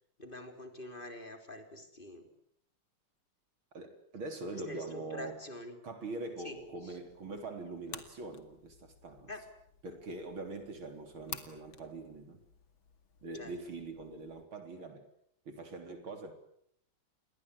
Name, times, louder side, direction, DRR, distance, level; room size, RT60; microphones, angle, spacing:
voice 1, 0.2-2.3 4.5-5.8 6.4-6.6 6.8-7.0 9.3-9.4 13.3-13.5, left 1 dB, 25° left, 3.8 m, -45 dB
voice 2, 3.7-5.4 5.8-9.3 9.8-12.4 13.2-15.1 15.5-16.3, right 2 dB, 80° right, 4.4 m, -43 dB
sound 1, 6.5-14.4, left 6 dB, 75° left, 3.0 m, -52 dB
29.5 x 22.0 x 8.3 m
omnidirectional pair, 2.2 m